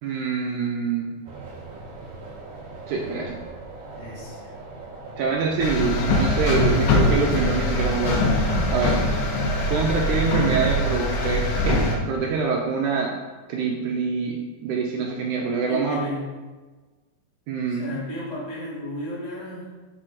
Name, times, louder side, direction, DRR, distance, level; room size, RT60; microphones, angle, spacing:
voice 1, 0.0-1.1 2.9-3.4 5.2-8.3 8.7-9.0 9.7-13.1 13.5-16.0 17.5-17.8, right 4 dB, 80° right, -1 dB, 1.8 m, -25 dB
sound 1, 1.2-11.2, right 3 dB, 50° right, 2.2 m, -39 dB
voice 2, 3.9-4.5 14.9-15.1 15.6-16.3 17.7-19.7, left 1 dB, 15° left, -9 dB, 1.5 m, -34 dB
sound 2, 5.6-12.0, left 1 dB, 75° left, 2.4 m, -22 dB
7.7 x 4.2 x 4.5 m, 1.3 s
omnidirectional pair, 4.2 m